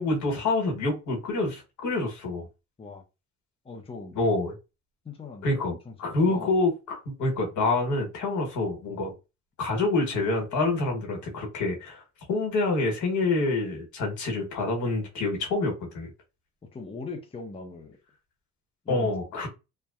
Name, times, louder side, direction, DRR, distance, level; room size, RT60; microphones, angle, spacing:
voice 1, 0.0-2.5 4.1-4.5 5.4-9.1 9.6-12.0 12.3-16.1 18.9-19.5, left 2 dB, 75° left, 1.1 m, -27 dB
voice 2, 3.6-4.2 5.0-6.5 16.7-18.0 18.8-19.1, left 4 dB, 20° left, 0.6 m, -41 dB
2.6 x 2.2 x 2.3 m
cardioid pair, 90°, 30 cm